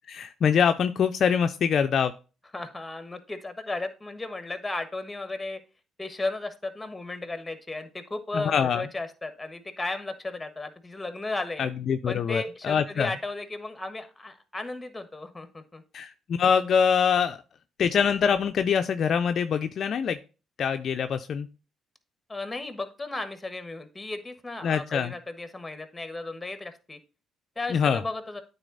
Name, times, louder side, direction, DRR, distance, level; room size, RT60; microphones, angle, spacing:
voice 1, 0.1-2.1 8.3-8.8 11.6-13.1 15.9-17.4 17.8-20.2 20.6-21.5 24.6-25.1 27.7-28.0, left 7 dB, 55° left, 8 dB, 0.5 m, -24 dB
voice 2, 2.5-5.6 6.0-11.6 12.1-15.8 22.3-27.0 27.6-28.4, left 2 dB, 15° left, 9 dB, 1.4 m, -35 dB
9.0 x 4.1 x 3.9 m, 0.32 s
supercardioid pair, 65°, 0 cm